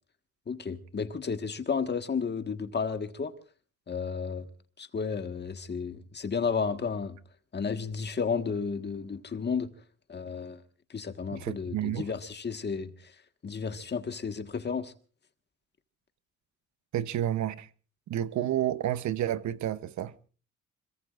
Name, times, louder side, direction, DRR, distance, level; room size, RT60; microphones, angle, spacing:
voice 1, 0.5-3.3 3.9-4.5 4.8-7.2 7.5-9.7 10.1-10.6 10.9-13.1 13.4-14.9, left 5 dB, 35° left, 1.5 m, -32 dB
voice 2, 11.3-12.1 16.9-17.7 18.1-20.1, right 12 dB, 70° right, 0.8 m, -30 dB
25.5 x 22.5 x 2.5 m
cardioid pair, 90°, 30 cm